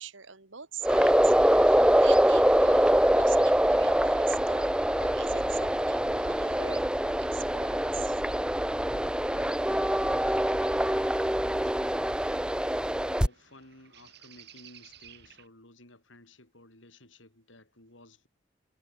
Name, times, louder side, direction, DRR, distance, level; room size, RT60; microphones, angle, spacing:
voice 1, 0.0-4.7 5.0-8.2, right 7 dB, 80° right, 3.1 m, -44 dB
sound 1, 0.8-13.3, equal, 5° right, 0.7 m, -24 dB
sound 2, 2.3-15.5, right 5 dB, 60° right, 5.7 m, -57 dB
voice 2, 9.3-18.3, left 2 dB, 80° left, 7.2 m, -55 dB
head